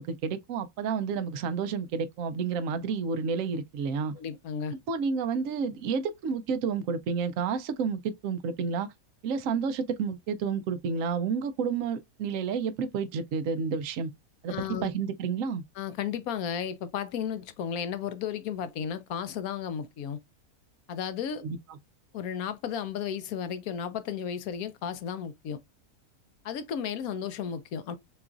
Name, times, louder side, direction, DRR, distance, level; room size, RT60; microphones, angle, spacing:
voice 1, 0.0-4.1 4.9-8.9 9.2-14.1 14.4-14.5 14.8-15.6 21.4-21.6, right 5 dB, 65° right, 1.0 m, -30 dB
voice 2, 4.1-4.7 14.5-14.9 15.8-20.2 20.9-21.4 22.1-25.6 26.4-28.0, left 8 dB, 75° left, 1.1 m, -34 dB
6.8 x 2.4 x 2.5 m
omnidirectional pair, 1.6 m